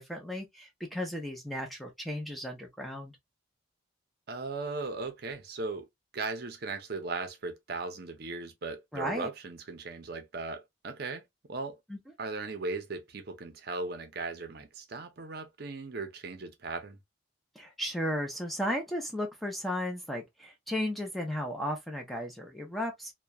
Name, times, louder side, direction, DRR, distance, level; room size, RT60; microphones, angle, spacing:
voice 1, 0.0-3.1 8.9-9.3 11.9-12.0 17.6-23.1, equal, ahead, 0.5 m, -35 dB
voice 2, 4.3-5.9 6.1-11.2 11.5-11.8 12.2-17.0, right 3 dB, 55° right, 0.6 m, -37 dB
2.8 x 2.1 x 2.2 m
head